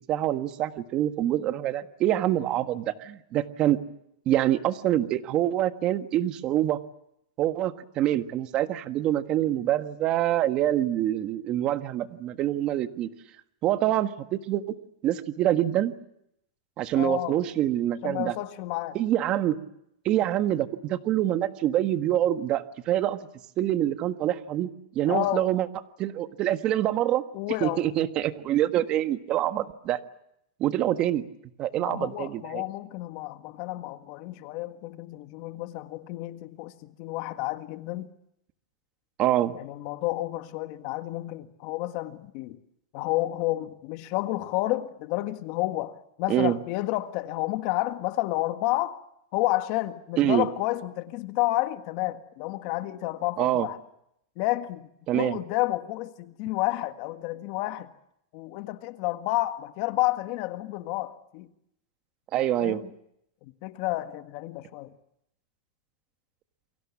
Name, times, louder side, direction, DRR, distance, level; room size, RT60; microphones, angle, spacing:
voice 1, 0.1-3.8 4.2-6.8 7.4-13.1 13.6-14.6 15.0-15.9 16.8-18.3 18.9-19.6 20.0-23.2 23.6-24.7 24.9-25.7 26.0-27.2 27.6-30.0 30.6-31.2 31.6-32.6 39.2-39.5 46.3-46.6 50.2-50.5 53.4-53.7 55.1-55.4 62.3-62.8, right 12 dB, 35° right, 1.5 m, -25 dB
voice 2, 16.9-17.4 18.0-19.0 25.1-25.5 27.3-27.8 31.8-38.1 39.5-42.6 42.9-49.0 49.3-53.8 54.4-54.9 55.1-57.9 58.3-61.5 62.4-62.9 63.4-64.9, left 17 dB, 50° left, 1.6 m, -30 dB
29.0 x 23.0 x 7.3 m
supercardioid pair, 145°, 3 cm